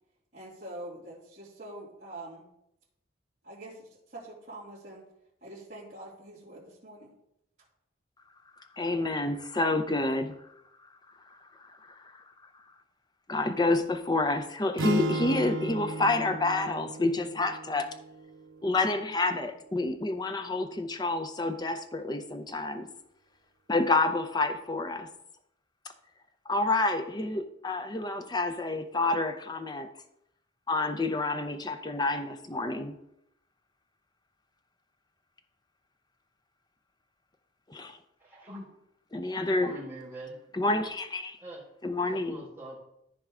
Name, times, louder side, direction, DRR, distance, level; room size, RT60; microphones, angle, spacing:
voice 1, 0.3-2.5 3.4-5.0 5.4-7.1, right 1 dB, 35° right, -11 dB, 2.8 m, -45 dB
voice 2, 8.7-10.3 11.6-12.2 13.3-17.9 18.6-22.9 23.7-25.1 26.5-29.9 30.7-32.9 37.7-38.0 39.1-39.7 40.6-41.4 41.8-42.4, left 2 dB, 20° left, 8 dB, 0.5 m, -28 dB
sound 1, 14.8-18.9, right 1 dB, 85° right, 0.7 m, -35 dB
voice 3, 38.2-38.7 39.3-40.4 41.4-41.6 42.1-42.8, right 1 dB, 10° right, -8 dB, 3.1 m, -43 dB
13.5 x 4.6 x 3.7 m, 0.80 s
head